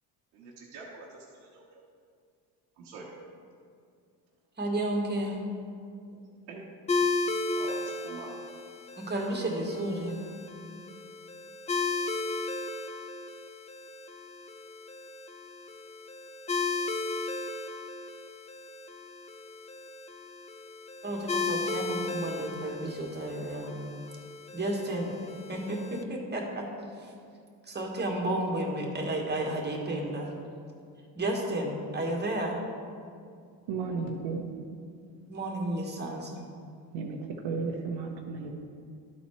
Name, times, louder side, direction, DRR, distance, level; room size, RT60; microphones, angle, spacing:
voice 1, 0.3-1.2 1.5-1.8 2.8-3.1 6.5-6.7 7.6-8.4, right 4 dB, 90° right, -5 dB, 1.2 m, -45 dB
voice 2, 4.6-5.4 9.0-10.2 21.0-23.7 24.5-25.1 25.5-26.7 27.7-30.3 31.1-32.6 35.3-36.4, right 1 dB, 20° right, 0 dB, 1.6 m, -32 dB
sound 1, 6.9-26.0, left 3 dB, 15° left, 0.3 m, -35 dB
voice 3, 33.7-34.5 36.9-37.2 37.4-38.5, right 4 dB, 70° right, 1 dB, 0.9 m, -33 dB
11.5 x 4.2 x 4.4 m, 2.3 s
supercardioid pair, 80°, 46 cm